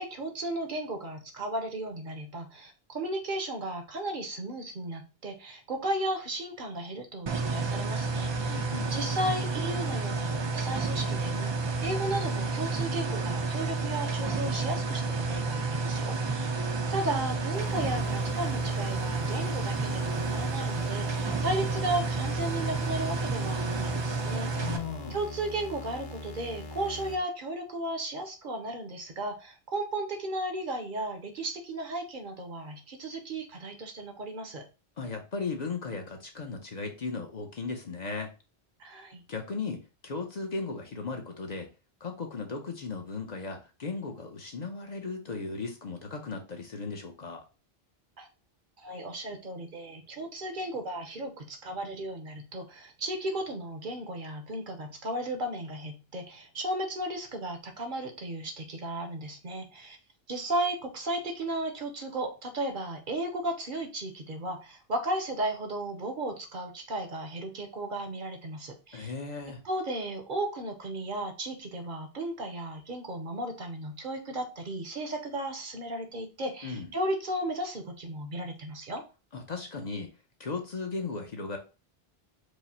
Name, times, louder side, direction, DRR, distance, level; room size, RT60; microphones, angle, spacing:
voice 1, 0.0-8.6 8.9-16.5 16.9-24.8 25.1-34.6 38.8-39.2 48.2-48.3 48.8-60.0 60.3-69.1 69.6-79.0, right 1 dB, 55° right, 5 dB, 0.8 m, -35 dB
sound 1, 7.3-24.8, right 3 dB, 40° right, 0.4 m, -30 dB
voice 2, 8.5-8.9 24.5-25.2 35.0-38.3 39.3-41.7 42.0-47.4 68.9-69.6 76.6-76.9 79.3-80.1 80.4-81.6, left 4 dB, 45° left, 3 dB, 0.7 m, -36 dB
sound 2, 17.5-27.2, left 2 dB, 75° left, 1.0 m, -42 dB
4.8 x 2.0 x 4.0 m, 0.31 s
omnidirectional pair, 1.0 m